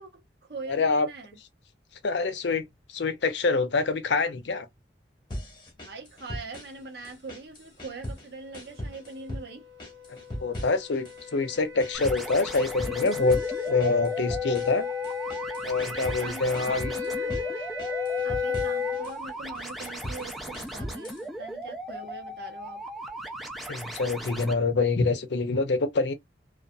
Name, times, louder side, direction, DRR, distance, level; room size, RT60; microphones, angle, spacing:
voice 1, 0.0-1.4 5.8-9.7 16.0-17.4 18.2-22.8, right 3 dB, 65° right, 0.8 m, -42 dB
voice 2, 0.7-1.1 2.0-2.6 2.9-4.7 10.1-13.4 13.7-14.9 15.6-16.9 23.7-26.1, left 3 dB, 85° left, 0.6 m, -26 dB
sound 1, 5.3-6.8 7.0-8.3 8.5-9.5 9.8-11.3 11.5-16.3 16.5-17.5 17.8-19.2 19.5-21.2, equal, 25° left, 1.0 m, -39 dB
sound 2, 9.2-19.1, left 6 dB, 20° right, 0.8 m, -33 dB
sound 3, 11.9-24.5, right 1 dB, ahead, 0.4 m, -38 dB
2.6 x 2.3 x 2.2 m
head